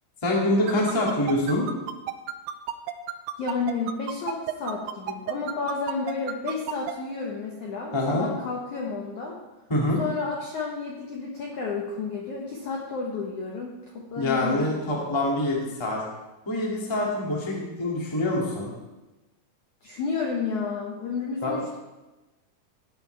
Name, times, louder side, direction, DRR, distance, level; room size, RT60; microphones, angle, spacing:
voice 1, 0.2-1.6 7.9-8.3 9.7-10.0 14.1-16.0 16.4-18.7 21.4-21.8, left 1 dB, 10° left, -4 dB, 1.2 m, -25 dB
sound 1, 0.7-6.9, right 13 dB, 90° right, 2.9 m, -31 dB
voice 2, 3.4-9.4 10.0-15.2 19.8-21.8, left 4 dB, 70° left, -2 dB, 1.9 m, -31 dB
17.0 x 9.3 x 3.5 m, 1.1 s
omnidirectional pair, 5.1 m